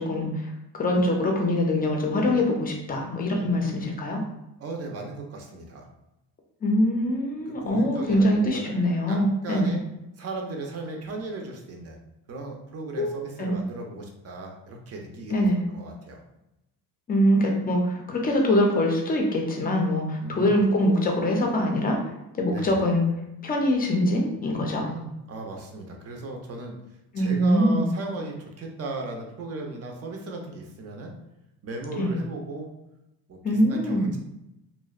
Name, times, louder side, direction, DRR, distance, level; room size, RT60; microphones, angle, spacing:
voice 1, 0.0-4.2 6.6-9.8 13.0-13.6 15.3-15.6 17.1-22.0 22.3-23.0 23.4-24.9 27.1-27.9 32.0-32.1 33.4-34.1, left 1 dB, 25° left, 1 dB, 0.4 m, -23 dB
voice 2, 3.5-3.9 4.6-5.9 7.5-8.8 9.1-9.8 10.2-12.0 12.3-15.4 15.7-16.2 20.2-20.6 22.5-22.8 24.8-31.1 31.6-32.7 33.3-34.2, right 2 dB, 40° right, 2 dB, 0.5 m, -36 dB
2.6 x 2.0 x 2.3 m, 0.90 s
cardioid pair, 125°, 41 cm